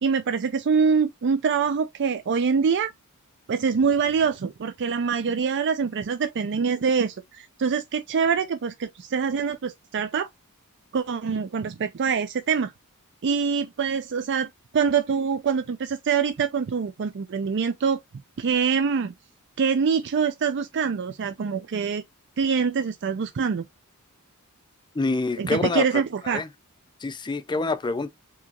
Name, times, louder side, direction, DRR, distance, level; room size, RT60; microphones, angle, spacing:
voice 1, 0.0-2.9 3.5-10.3 10.9-12.7 13.2-18.0 18.4-19.1 19.6-22.0 22.4-23.6 25.4-26.4, right 6 dB, 55° right, 0.4 m, -24 dB
voice 2, 24.9-25.9 26.2-26.5 27.0-28.1, left 3 dB, 20° left, 0.4 m, -26 dB
4.6 x 2.8 x 2.9 m
head